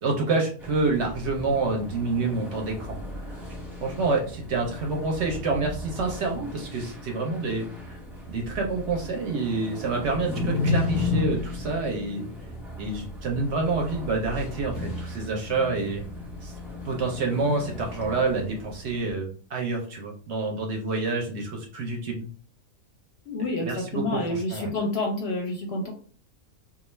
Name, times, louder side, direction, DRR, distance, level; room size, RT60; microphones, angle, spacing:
voice 1, 0.0-3.0 3.2-3.4 3.8-8.0 8.3-12.3 12.8-16.0 16.4-16.5 16.8-22.3 23.6-24.7, right 3 dB, 65° right, 1 dB, 0.8 m, -28 dB
sound 1, 0.6-19.1, left 2 dB, ahead, 0.8 m, -34 dB
voice 2, 23.3-25.9, left 2 dB, 60° left, 1 dB, 0.7 m, -29 dB
2.4 x 2.3 x 3.1 m, 0.42 s
omnidirectional pair, 1.4 m